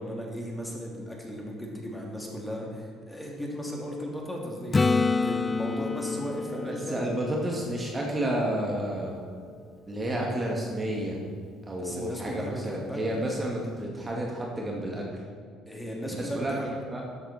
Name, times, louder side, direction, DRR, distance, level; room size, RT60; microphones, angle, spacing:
voice 1, 0.0-7.0 11.8-13.3 15.7-16.7, equal, 10° left, -1 dB, 2.8 m, -36 dB
Acoustic guitar / Strum, 4.7-8.5 13.3-13.4, left 4 dB, 25° left, 0.5 m, -28 dB
voice 2, 6.5-9.2 9.9-11.2 11.7-15.1 16.2-16.6 16.9-17.0, right 1 dB, 25° right, -2 dB, 2.2 m, -31 dB
13.0 x 7.9 x 4.3 m, 2.1 s
hypercardioid pair, 65°, 0 cm